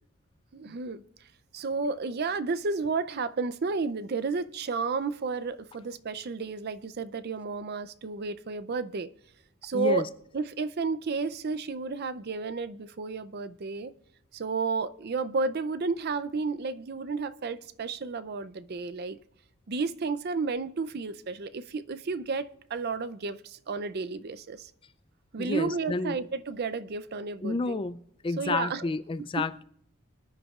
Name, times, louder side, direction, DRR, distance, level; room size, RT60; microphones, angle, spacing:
voice 1, 0.5-1.0 1.5-9.1 9.6-10.1 10.3-13.9 14.3-19.2 19.7-24.7 25.3-27.8 28.4-28.9 29.4-29.5, right 4 dB, 45° right, 0.5 m, -32 dB
voice 2, 9.7-10.1 25.4-26.2 27.4-29.6, left 3 dB, 25° left, 0.3 m, -30 dB
25.0 x 10.0 x 2.4 m
head